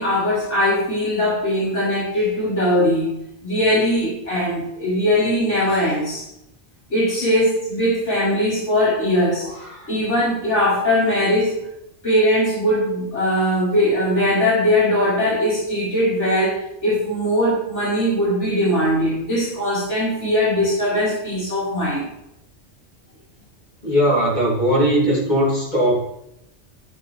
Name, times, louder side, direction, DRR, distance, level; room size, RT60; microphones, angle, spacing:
voice 1, 0.0-6.3 6.9-11.6 12.0-22.1, left 1 dB, 80° left, -8 dB, 5.0 m, -20 dB
voice 2, 23.8-26.0, equal, 40° left, -6 dB, 3.6 m, -18 dB
11.5 x 9.3 x 3.5 m, 0.81 s
omnidirectional pair, 1.2 m